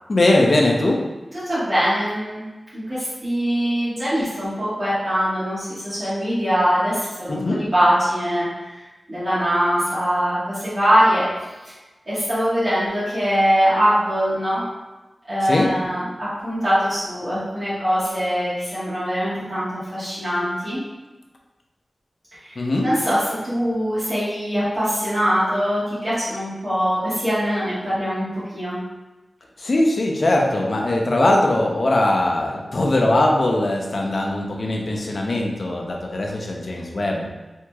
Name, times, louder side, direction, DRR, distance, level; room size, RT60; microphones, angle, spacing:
voice 1, 0.1-1.0 7.3-7.6 15.4-15.7 22.6-22.9 29.6-37.3, left 1 dB, 55° left, 0 dB, 0.5 m, -20 dB
voice 2, 1.4-2.4 2.7-8.5 9.1-11.2 11.6-11.7 12.1-14.6 15.3-20.8 22.4-22.5 22.8-28.8, equal, 40° right, -13 dB, 1.3 m, -22 dB
3.5 x 2.9 x 2.3 m, 1.1 s
wide cardioid pair, 80°, 0 cm